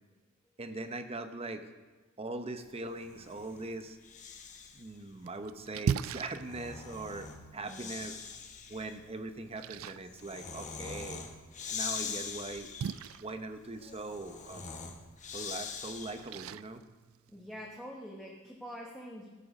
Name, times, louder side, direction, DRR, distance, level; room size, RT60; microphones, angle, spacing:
voice 1, 0.6-1.7 2.2-4.0 4.7-8.2 8.7-11.2 11.6-12.7 13.2-14.8 15.3-16.8, right 2 dB, 30° right, 9 dB, 0.8 m, -41 dB
Breathing, 2.9-4.9 6.2-16.4, left 6 dB, 35° left, 1.1 m, -43 dB
Splash splatter, 4.8-17.8, right 7 dB, 70° right, 0.3 m, -42 dB
voice 2, 7.5-7.9 12.1-12.3 13.1-13.2 17.3-19.3, equal, 5° left, -3 dB, 1.3 m, -46 dB
14.0 x 7.5 x 6.4 m, 1.3 s
head